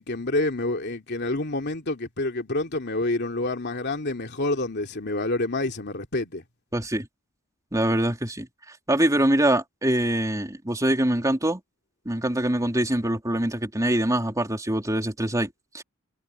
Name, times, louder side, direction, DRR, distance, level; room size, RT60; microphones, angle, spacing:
voice 1, 0.0-6.4, left 2 dB, 55° left, 2.9 m, -28 dB
voice 2, 6.7-7.1 7.7-8.5 8.9-11.6 12.1-15.5 15.7-15.8, right 1 dB, 15° right, 3.5 m, -24 dB
head